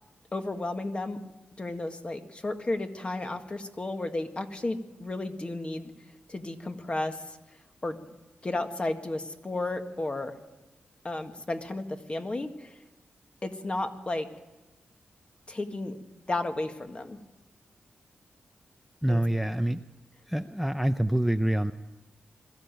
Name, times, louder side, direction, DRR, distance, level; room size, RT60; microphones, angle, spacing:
voice 1, 0.3-1.2 1.6-5.9 6.3-7.2 7.8-8.0 8.4-10.4 11.0-12.7 13.4-14.3 15.5-16.0 16.3-17.2 19.1-19.2, left 2 dB, 30° left, 6 dB, 1.8 m, -33 dB
voice 2, 19.0-19.8 20.3-21.7, right 1 dB, 5° right, 8 dB, 0.6 m, -26 dB
22.0 x 15.0 x 9.1 m, 1.1 s
wide cardioid pair, 95°, 4 cm